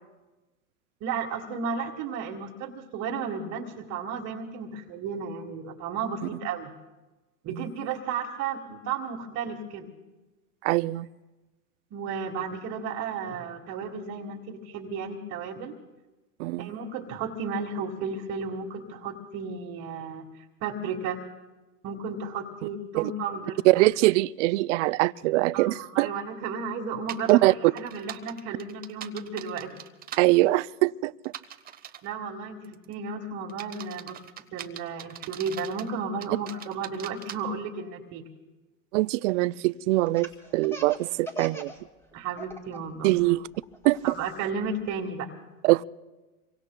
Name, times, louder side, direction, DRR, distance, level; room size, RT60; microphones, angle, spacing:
voice 1, 1.0-6.7 7.4-9.9 11.9-15.7 16.6-21.2 21.8-23.6 25.5-29.8 32.0-34.2 34.5-38.2 42.1-43.1 44.0-45.3, right 5 dB, 40° right, 0 dB, 1.5 m, -33 dB
voice 2, 10.6-11.1 16.4-16.7 23.0-23.1 23.7-26.1 27.3-27.5 30.2-31.1 38.9-41.7 43.0-43.4 43.8-44.2 45.6-45.8, right 20 dB, 55° right, 17 dB, 0.5 m, -23 dB
sound 1, 27.1-27.3 27.8-30.2 31.2-32.1 32.6-32.9 33.5-35.9 36.2-37.4, right 10 dB, 20° right, 0.8 m, -41 dB
Laughter, 40.1-41.8 42.1-42.8 43.1-44.9, left 1 dB, 5° left, 2.0 m, -41 dB
26.5 x 23.5 x 2.2 m, 1.1 s
hypercardioid pair, 115°, 43 cm